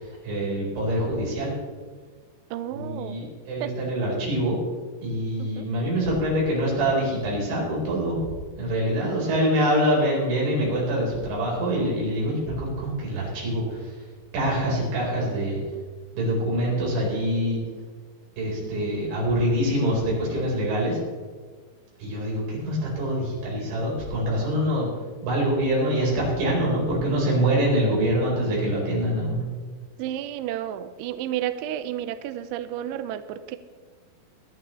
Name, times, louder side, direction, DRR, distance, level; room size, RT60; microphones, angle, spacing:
voice 1, 0.0-1.5 2.7-4.6 5.0-8.2 8.6-14.0 14.3-15.6 16.1-17.6 18.4-21.0 22.0-24.9 25.2-29.5, equal, 65° right, -4 dB, 6.6 m, -25 dB
voice 2, 2.5-3.3 3.6-3.8 5.4-5.7 30.0-33.6, right 11 dB, 85° right, 11 dB, 2.8 m, -32 dB
25.0 x 9.4 x 3.2 m, 1.5 s
omnidirectional pair, 5.8 m